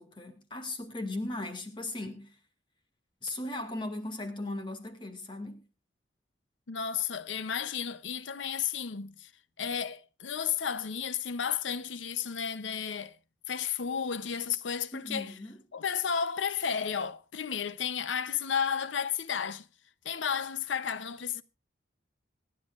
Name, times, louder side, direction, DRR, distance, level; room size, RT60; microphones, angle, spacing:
voice 1, 0.0-2.4 3.2-5.6 14.9-15.6, left 2 dB, 25° left, 2.2 m, -37 dB
voice 2, 6.7-9.3 9.6-13.2 13.5-15.3 15.7-19.7 20.0-21.4, left 7 dB, 90° left, 0.7 m, -32 dB
26.0 x 10.5 x 2.4 m
head